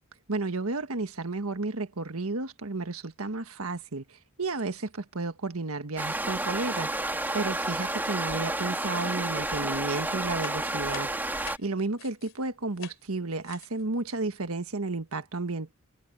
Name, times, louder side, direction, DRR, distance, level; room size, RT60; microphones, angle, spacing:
voice 1, 0.3-11.1 11.6-15.7, right 3 dB, 80° right, 1.5 m, -32 dB
sound 1, 6.0-11.6, right 1 dB, 10° right, 2.4 m, -31 dB
sound 2, 10.4-12.4 12.7-13.1 13.4-13.8, left 8 dB, 60° left, 3.5 m, -46 dB
head